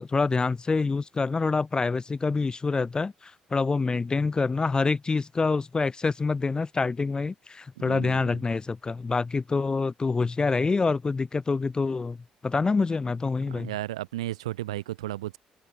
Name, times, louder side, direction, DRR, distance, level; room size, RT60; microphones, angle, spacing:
voice 1, 0.0-12.2 12.4-13.7, left 4 dB, 25° left, 0.3 m, -26 dB
voice 2, 7.8-8.4 13.5-15.4, right 15 dB, 90° right, 1.5 m, -34 dB
hypercardioid pair, 50°, 3 cm